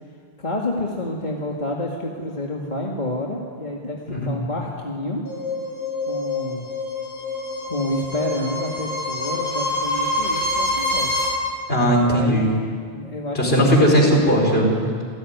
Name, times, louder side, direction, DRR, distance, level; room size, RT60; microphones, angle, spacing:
voice 1, 0.4-5.2 6.1-6.7 7.6-11.1 12.0-12.5 12.9-13.9, left 1 dB, 45° left, -1 dB, 2.3 m, -29 dB
sound 1, 5.2-11.2, left 2 dB, 15° left, 6.7 m, -26 dB
voice 2, 11.7-12.6 13.4-15.0, equal, 75° left, 0 dB, 5.2 m, -18 dB
27.5 x 17.0 x 9.5 m, 2.1 s
omnidirectional pair, 1.0 m